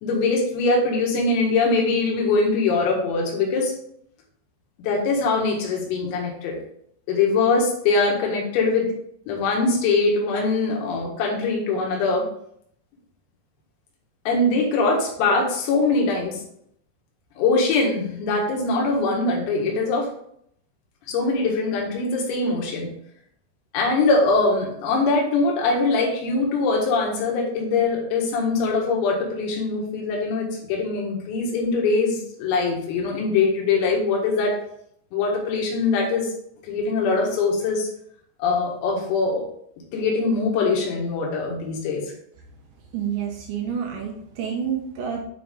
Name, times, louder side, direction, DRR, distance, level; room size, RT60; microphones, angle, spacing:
voice 1, 0.0-3.7 4.8-6.5 7.1-8.9 9.3-12.3 14.3-16.4 17.4-20.1 21.1-22.9 23.7-34.6 35.1-36.3 36.6-37.9 38.4-39.4 39.9-42.1, left 3 dB, 85° left, -1 dB, 4.4 m, -22 dB
voice 2, 42.8-45.2, right 8 dB, 70° right, 0 dB, 3.1 m, -29 dB
8.9 x 4.7 x 3.7 m, 0.69 s
omnidirectional pair, 6.0 m